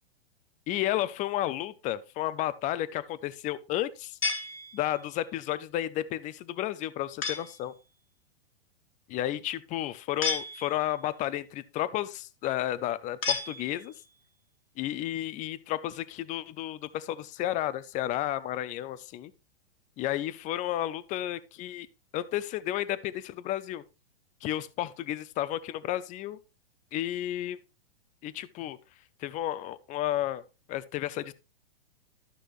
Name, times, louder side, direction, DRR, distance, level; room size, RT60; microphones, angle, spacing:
voice 1, 0.7-4.2 4.7-7.7 9.1-13.9 14.8-19.3 20.0-21.9 22.1-23.8 24.4-26.4 26.9-27.6 28.2-28.8 29.2-30.4 30.7-31.3, left 13 dB, 25° left, 0.6 m, -32 dB
sound 1, 4.2-5.2 7.2-7.7 10.2-11.0 13.2-14.1, left 5 dB, 70° left, 2.6 m, -33 dB
12.5 x 6.2 x 3.1 m
hypercardioid pair, 120°, 30 cm